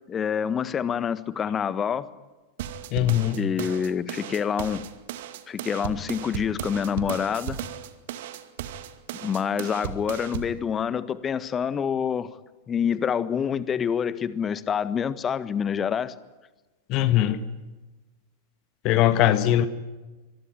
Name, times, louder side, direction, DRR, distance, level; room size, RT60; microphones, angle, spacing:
voice 1, 0.1-2.1 3.4-4.8 5.5-7.6 9.2-12.3 12.7-16.1, left 7 dB, 25° left, 15 dB, 1.5 m, -27 dB
sound 1, 2.6-10.6, right 10 dB, 55° right, 2.3 m, -36 dB
voice 2, 2.9-3.4 16.9-17.4 18.8-19.7, left 12 dB, 40° left, 12 dB, 1.7 m, -20 dB
26.5 x 22.5 x 9.5 m, 1.2 s
figure-of-eight pair, 90°, 0 cm